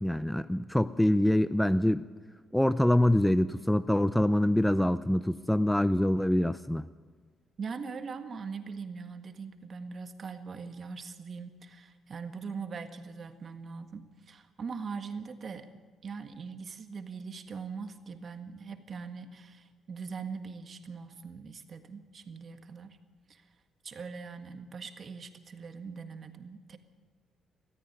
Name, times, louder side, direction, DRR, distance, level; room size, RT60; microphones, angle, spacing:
voice 1, 0.0-2.0 2.5-6.9, left 1 dB, 5° left, 14 dB, 0.6 m, -25 dB
voice 2, 7.6-15.7 16.0-23.0 23.3-23.4 23.8-26.8, right 5 dB, 45° right, 8 dB, 1.7 m, -41 dB
19.5 x 14.0 x 9.6 m, 1.4 s
cardioid pair, 90°, 0 cm